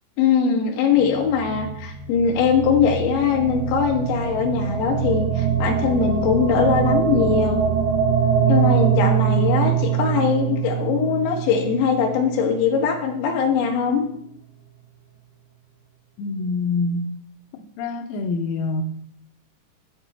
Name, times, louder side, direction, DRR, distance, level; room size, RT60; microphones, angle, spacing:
voice 1, 0.2-7.6 8.5-14.0, left 6 dB, 70° left, 1 dB, 3.4 m, -21 dB
sound 1, 0.9-13.2, right 8 dB, 70° right, 3.0 m, -23 dB
voice 2, 16.2-17.1 17.6-18.8, left 3 dB, 90° left, 6 dB, 3.4 m, -25 dB
9.3 x 7.9 x 4.2 m, 0.71 s
omnidirectional pair, 6.0 m